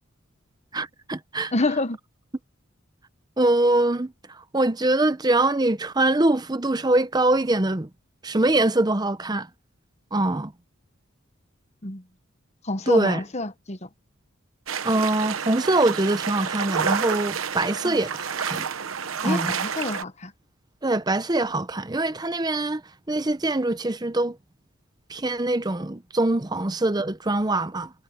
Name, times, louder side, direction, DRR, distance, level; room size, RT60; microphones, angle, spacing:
voice 1, 0.7-1.5 3.4-4.1 4.5-7.9 8.2-9.5 10.1-10.5 12.9-13.2 14.8-18.7 19.2-19.6 20.8-22.8 23.1-24.4 25.1-27.9, right 2 dB, 20° right, 0.7 m, -23 dB
voice 2, 1.5-2.0 11.8-12.0 12.6-13.9 17.8-18.0 19.2-20.3, left 2 dB, 35° left, 1.1 m, -28 dB
sound 1, 14.7-20.0, right 7 dB, 80° right, 1.0 m, -29 dB
head